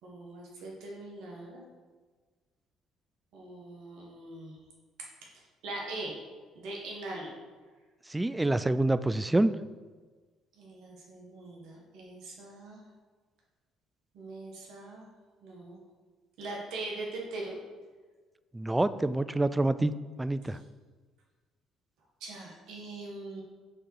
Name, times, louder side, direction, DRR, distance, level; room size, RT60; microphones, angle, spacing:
voice 1, 0.0-1.6 3.3-4.6 5.3-6.1 6.5-7.3 10.6-12.8 14.1-15.0 15.4-15.8 16.4-17.6 20.4-20.5 22.2-23.4, right 2 dB, 75° right, -2 dB, 1.6 m, -41 dB
voice 2, 8.1-9.5 18.5-19.9 20.2-20.6, right 2 dB, 15° right, 14 dB, 0.3 m, -27 dB
6.5 x 3.9 x 4.7 m, 1.4 s
supercardioid pair, 65°, 0 cm